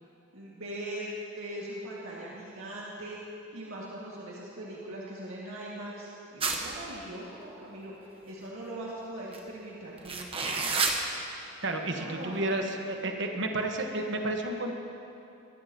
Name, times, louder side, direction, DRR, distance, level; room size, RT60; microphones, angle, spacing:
voice 1, 0.3-1.1 1.4-3.2 3.5-10.5 11.9-12.6 12.9-13.0, right 1 dB, 75° right, -6 dB, 1.9 m, -41 dB
sound 1, 6.4-6.9 9.3-9.4 10.0-11.0, right 4 dB, 25° right, 1.1 m, -28 dB
voice 2, 11.6-14.8, right 2 dB, 60° right, 3 dB, 1.3 m, -31 dB
22.0 x 14.5 x 2.9 m, 2.9 s
head